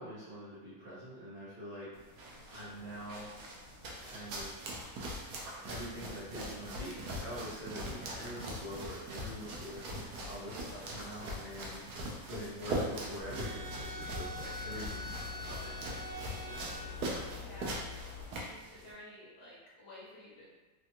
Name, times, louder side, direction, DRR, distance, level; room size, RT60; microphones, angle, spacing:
voice 1, 0.0-1.9 2.5-3.3 4.0-4.7 5.6-16.6, equal, 35° right, -12 dB, 1.1 m, -45 dB
sound 1, 1.9-18.9, right 1 dB, 80° right, 1.2 m, -42 dB
sound 2, 2.3-18.4, left 2 dB, 70° left, 1.1 m, -56 dB
voice 2, 7.9-8.2 17.4-17.8 18.3-20.5, left 1 dB, 45° left, -8 dB, 1.5 m, -52 dB
sound 3, 13.2-18.2, left 3 dB, 55° right, 0.9 m, -43 dB
3.3 x 2.5 x 2.8 m, 1.3 s
omnidirectional pair, 1.7 m